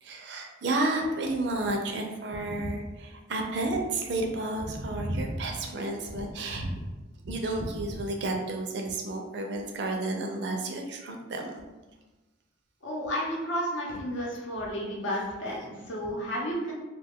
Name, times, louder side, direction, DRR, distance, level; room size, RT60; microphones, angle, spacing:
voice 1, 0.0-6.8 7.2-11.6, right 2 dB, 60° right, 3 dB, 0.4 m, -31 dB
voice 2, 12.8-16.7, equal, 70° left, -3 dB, 0.8 m, -32 dB
2.4 x 2.2 x 3.5 m, 1.1 s
head